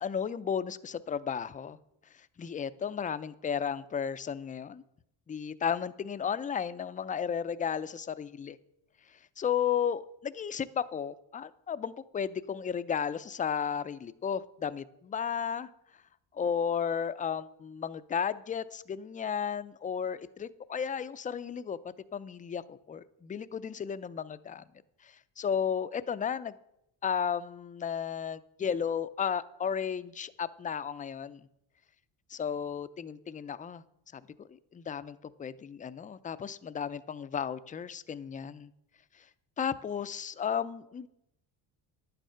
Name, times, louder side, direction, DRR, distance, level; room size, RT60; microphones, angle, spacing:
voice 1, 0.0-1.8 2.1-4.8 5.3-8.6 9.4-15.7 16.3-21.8 22.1-24.6 25.0-26.5 27.0-31.4 32.3-33.8 34.1-38.7 39.2-39.3 39.6-41.1, left 7 dB, 20° left, 14 dB, 0.3 m, -34 dB
10.5 x 9.2 x 5.6 m, 0.81 s
cardioid pair, 110°, 50 cm